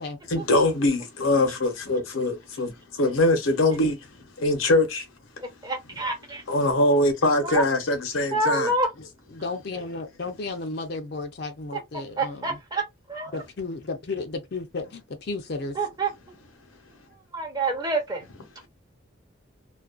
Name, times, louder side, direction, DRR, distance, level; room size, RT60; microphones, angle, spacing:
voice 1, 0.3-2.7 3.0-4.0 4.4-5.0 6.5-8.7, left 2 dB, 85° left, 0.8 m, -22 dB
voice 2, 5.6-6.4 7.4-7.6 8.3-8.9 12.2-12.8 13.1-13.3 15.7-16.1 17.3-18.2, right 2 dB, 20° right, 0.7 m, -27 dB
voice 3, 9.3-12.6 13.3-15.8, left 3 dB, 50° left, 0.5 m, -33 dB
2.4 x 2.3 x 2.3 m
head